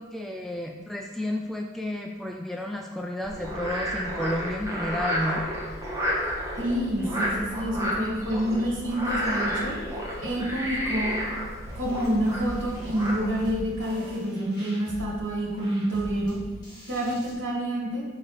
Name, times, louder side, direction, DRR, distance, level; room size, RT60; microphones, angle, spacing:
voice 1, 0.0-5.5, left 1 dB, ahead, 1 dB, 0.3 m, -31 dB
Frog, 3.2-13.5, equal, 15° right, 1.2 m, -31 dB
voice 2, 6.6-9.8 10.2-11.2 11.7-16.4 16.9-18.0, equal, 60° right, -5 dB, 2.3 m, -28 dB
sound 1, 11.7-17.3, equal, 20° left, 1.8 m, -43 dB
6.2 x 4.8 x 4.4 m, 1.2 s
head